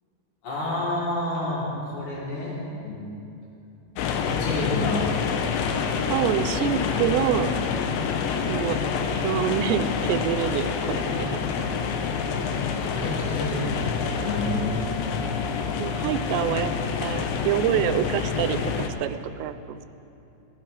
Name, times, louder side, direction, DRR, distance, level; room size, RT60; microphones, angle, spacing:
voice 1, 0.4-2.5 2.8-3.0 4.2-5.0 12.8-14.9, left 2 dB, 65° left, -7 dB, 5.1 m, -29 dB
sound 1, 4.0-18.9, left 6 dB, 85° left, 3.1 m, -27 dB
voice 2, 6.1-7.5 8.5-8.8 9.2-11.8 15.8-19.9, right 11 dB, 90° right, 11 dB, 2.8 m, -27 dB
19.5 x 15.0 x 3.3 m, 2.7 s
omnidirectional pair, 4.9 m